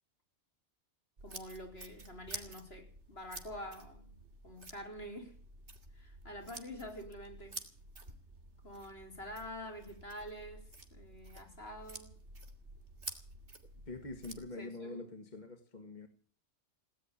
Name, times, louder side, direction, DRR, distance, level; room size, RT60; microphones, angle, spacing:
voice 1, 1.2-5.3 5.9-7.6 8.6-12.1 14.6-15.1, equal, 60° left, 4.3 m, -47 dB
sound 1, 1.2-14.4, right 2 dB, 75° right, 2.9 m, -50 dB
voice 2, 13.9-16.1, left 3 dB, 40° left, 1.7 m, -45 dB
18.0 x 9.6 x 8.4 m
omnidirectional pair, 1.2 m